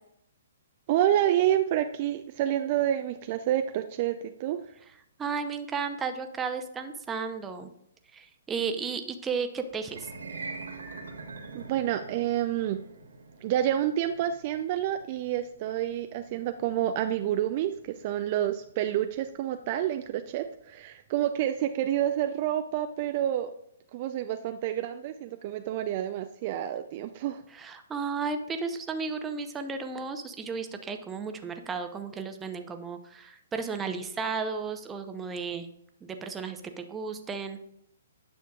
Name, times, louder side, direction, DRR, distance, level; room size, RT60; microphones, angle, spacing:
voice 1, 0.9-4.7 11.5-12.8 13.4-23.5 23.9-27.4, right 11 dB, 40° right, 8 dB, 0.4 m, -28 dB
voice 2, 5.2-7.7 8.1-10.1 27.5-35.7 36.0-37.6, right 5 dB, 15° right, 7 dB, 0.7 m, -34 dB
sound 1, 9.8-20.1, right 3 dB, 80° right, 1.4 m, -45 dB
9.4 x 6.5 x 2.4 m, 0.76 s
hypercardioid pair, 130°, 0 cm